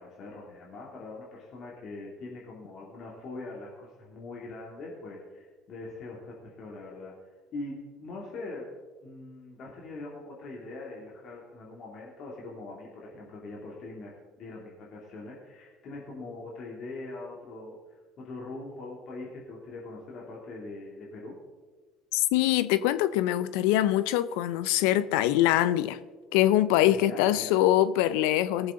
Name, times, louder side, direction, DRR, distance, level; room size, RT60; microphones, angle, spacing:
voice 1, 0.0-7.1 7.5-8.7 9.0-17.8 18.2-21.4 26.9-27.6, left 2 dB, 55° left, 2.7 m, -42 dB
voice 2, 22.1-26.0 26.3-28.7, left 13 dB, 70° left, 0.5 m, -24 dB
19.5 x 7.3 x 3.8 m
hypercardioid pair, 70°, 0 cm